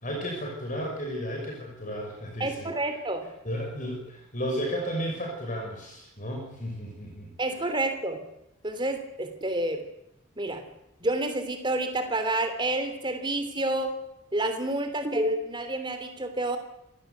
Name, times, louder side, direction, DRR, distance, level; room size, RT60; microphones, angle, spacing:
voice 1, 0.0-2.7 3.4-7.3 7.6-7.7, equal, 40° left, 0 dB, 5.8 m, -33 dB
voice 2, 2.4-3.2 7.4-8.2 8.6-9.8 10.4-10.6 11.0-13.9 14.3-16.6, right 1 dB, 20° right, 7 dB, 3.3 m, -29 dB
27.0 x 17.5 x 8.2 m, 0.84 s
head